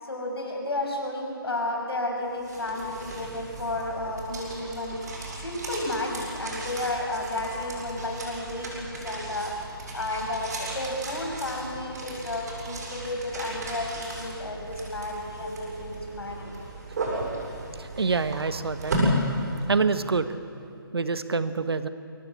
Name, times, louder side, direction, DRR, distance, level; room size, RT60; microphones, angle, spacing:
voice 1, 0.0-5.0 5.4-16.5 17.2-17.4, left 1 dB, 80° left, 1 dB, 6.6 m, -32 dB
sound 1, 2.2-20.2, right 1 dB, 45° right, 7.7 m, -34 dB
voice 2, 17.8-19.0 19.7-20.3 20.9-21.9, right 4 dB, 80° right, 11 dB, 1.4 m, -26 dB
23.0 x 18.0 x 8.3 m, 2.5 s
hypercardioid pair, 165°, 13 cm